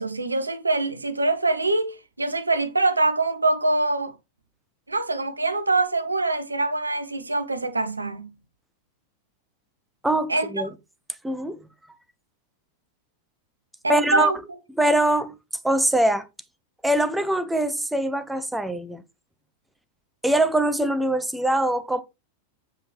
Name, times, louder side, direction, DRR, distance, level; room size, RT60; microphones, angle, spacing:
voice 1, 0.0-4.1 4.9-8.3 10.3-10.5 13.8-14.6, right 2 dB, 80° right, 0.8 m, -24 dB
voice 2, 10.0-10.7 11.2-11.6 13.9-14.3 14.8-15.4 15.6-16.3 16.8-19.0 20.2-22.0, right 1 dB, 5° right, 0.7 m, -22 dB
7.9 x 4.9 x 3.2 m
figure-of-eight pair, 90°, 0 cm